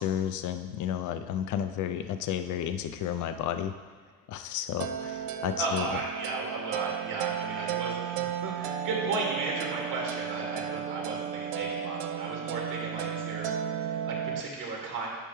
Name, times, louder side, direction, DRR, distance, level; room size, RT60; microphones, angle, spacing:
voice 1, 0.0-3.8 4.3-5.9, left 9 dB, 55° left, 9 dB, 0.6 m, -32 dB
sound 1, 4.8-14.4, right 9 dB, 85° right, 0.5 m, -34 dB
voice 2, 5.6-15.1, right 3 dB, 60° right, -2 dB, 2.3 m, -35 dB
10.5 x 5.4 x 3.2 m, 1.5 s
supercardioid pair, 70°, 36 cm